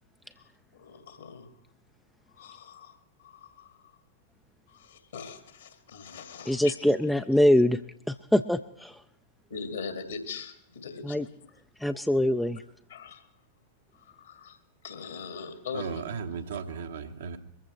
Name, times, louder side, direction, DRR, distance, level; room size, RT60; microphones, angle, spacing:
voice 1, 0.7-1.5 2.3-3.8 4.7-6.7 9.5-11.3 12.9-13.2 14.0-14.6 14.8-16.0, left 5 dB, 65° left, 6 dB, 2.1 m, -41 dB
voice 2, 6.5-7.8 8.1-9.0 11.0-11.3 11.8-12.6, left 1 dB, 5° left, 8 dB, 0.4 m, -24 dB
voice 3, 15.7-17.4, right 6 dB, 65° right, 6 dB, 1.1 m, -36 dB
22.0 x 14.5 x 3.3 m, 0.73 s
figure-of-eight pair, 90°, 0 cm